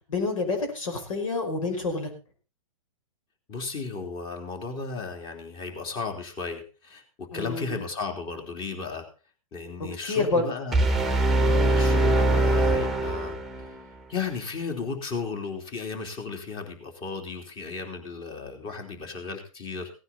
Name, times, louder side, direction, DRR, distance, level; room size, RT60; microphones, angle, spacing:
voice 1, 0.1-2.1 7.3-7.8 10.0-10.5, left 3 dB, 75° left, 4 dB, 5.4 m, -28 dB
voice 2, 3.5-9.0 9.5-10.9 11.4-13.7 14.1-19.9, left 4 dB, 25° left, 5 dB, 3.3 m, -34 dB
sound 1, 10.7-13.7, right 2 dB, ahead, 1.3 m, -22 dB
17.0 x 9.7 x 4.3 m, 0.33 s
hypercardioid pair, 130°, 17 cm